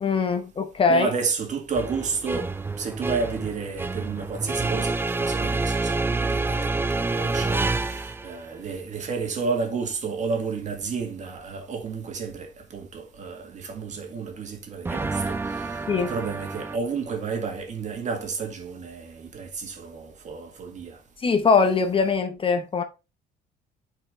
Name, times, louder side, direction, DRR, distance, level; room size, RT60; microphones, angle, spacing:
voice 1, 0.0-1.1 15.9-16.1 21.2-22.8, left 5 dB, 30° left, 0.9 m, -22 dB
voice 2, 0.9-21.0, right 5 dB, 45° right, 1.9 m, -31 dB
sound 1, 1.7-8.4 14.8-16.8, right 3 dB, 15° right, 0.5 m, -28 dB
8.7 x 4.7 x 3.2 m
cardioid pair, 110°, 17 cm